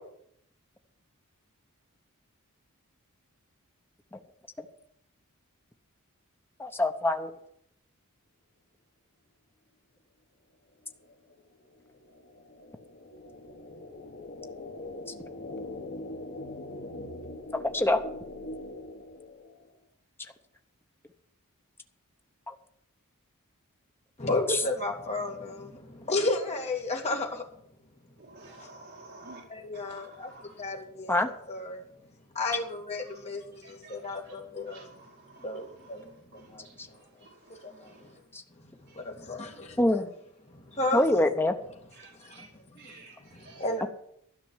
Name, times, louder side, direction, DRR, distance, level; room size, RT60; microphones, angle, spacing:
voice 1, 6.6-7.3 17.6-18.0 22.5-22.6 24.5-24.6 31.1-31.3 38.3-38.4 39.8-40.1 40.9-41.5, left 1 dB, 10° left, 6 dB, 0.8 m, -25 dB
sound 1, 10.9-19.8, left 2 dB, 50° left, 1.3 m, -42 dB
voice 2, 24.2-27.4 28.6-28.7 29.5-31.8 32.3-34.9 35.4-37.0 37.6-38.1 38.9-39.8 40.5-41.0 42.2-42.5 43.3-43.9, left 2 dB, 30° left, 1 dB, 2.2 m, -33 dB
voice 3, 28.2-29.4 29.7-30.7 32.4-32.6 33.0-33.1 33.6-38.2 38.9-39.1 41.9-43.7, right 3 dB, 50° right, -2 dB, 2.2 m, -53 dB
12.5 x 5.9 x 9.5 m, 0.70 s
head